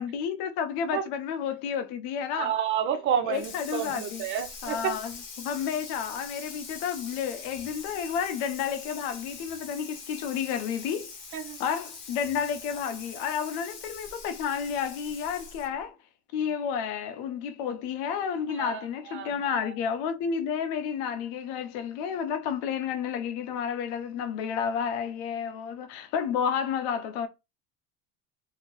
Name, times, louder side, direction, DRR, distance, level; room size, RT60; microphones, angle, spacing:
voice 1, 0.0-2.5 3.3-4.2 4.6-11.1 11.6-15.9 16.3-27.3, left 7 dB, 80° left, 0.7 m, -31 dB
voice 2, 2.3-4.9 11.3-11.6 18.5-19.7, right 8 dB, 35° right, 0.5 m, -30 dB
Water tap faucet / Sink (filling or washing), 3.3-15.8, left 4 dB, 35° left, 0.9 m, -43 dB
2.8 x 2.7 x 2.9 m
cardioid pair, 150°, 33 cm